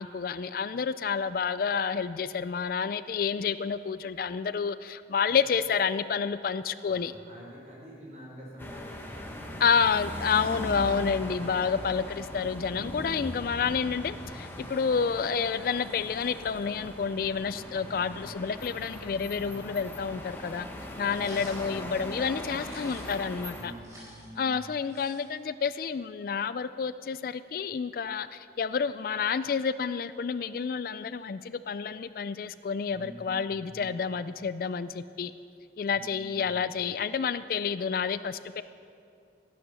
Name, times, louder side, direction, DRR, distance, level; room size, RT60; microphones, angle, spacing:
voice 1, 0.0-7.1 9.6-20.7 21.0-23.7 24.4-35.3 35.8-38.6, left 6 dB, 55° left, 14 dB, 0.3 m, -29 dB
voice 2, 6.8-10.7 17.7-18.3 21.0-21.6 23.5-24.7 32.9-33.9 35.9-36.5, equal, 40° right, -4 dB, 4.3 m, -49 dB
sound 1, 8.6-23.6, left 1 dB, 15° left, 1.3 m, -40 dB
sound 2, 21.1-21.6 22.5-23.2 23.6-25.5, right 1 dB, 15° right, 4.5 m, -50 dB
14.0 x 11.0 x 6.8 m, 2.4 s
head